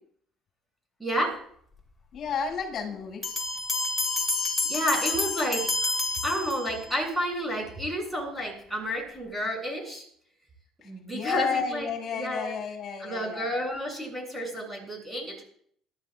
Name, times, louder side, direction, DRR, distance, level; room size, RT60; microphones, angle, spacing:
voice 1, 1.0-1.4 4.7-5.9 6.2-10.0 10.8-11.9 12.1-12.5 13.0-15.4, equal, 5° right, 0 dB, 7.5 m, -30 dB
voice 2, 2.1-3.2 10.8-13.5, left 6 dB, 50° left, 0 dB, 7.0 m, -32 dB
Bell, 3.2-7.0, left 3 dB, 10° left, 3.7 m, -29 dB
21.5 x 13.5 x 2.5 m, 0.63 s
supercardioid pair, 95°, 0 cm